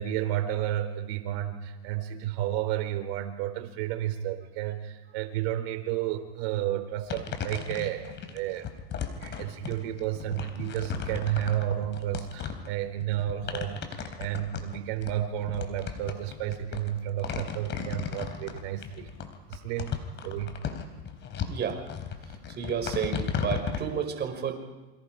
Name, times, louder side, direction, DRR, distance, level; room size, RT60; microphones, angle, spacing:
voice 1, 0.0-8.7 9.2-19.1 19.5-20.5, right 12 dB, 60° right, 5 dB, 4.3 m, -32 dB
sound 1, 7.1-23.8, left 7 dB, 35° left, 3.8 m, -35 dB
voice 2, 21.5-21.8 22.6-24.6, right 7 dB, 35° right, 4 dB, 5.3 m, -31 dB
28.0 x 25.0 x 5.0 m, 1.2 s
hypercardioid pair, 105°, 32 cm